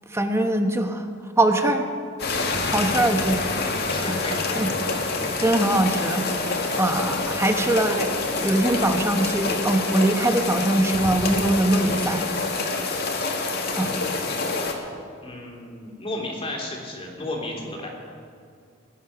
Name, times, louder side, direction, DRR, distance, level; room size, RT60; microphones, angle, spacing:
voice 1, 0.1-1.1 1.4-1.8 2.6-3.4 4.6-4.7 5.2-8.1 8.4-12.3 13.8-14.0, right 1 dB, 15° right, 6 dB, 1.0 m, -22 dB
sound 1, 2.2-14.7, left 3 dB, 55° left, 1.8 m, -27 dB
voice 2, 3.8-4.8 13.7-14.3 15.2-17.9, left 1 dB, 30° left, -1 dB, 2.9 m, -33 dB
20.0 x 10.0 x 5.9 m, 2.3 s
head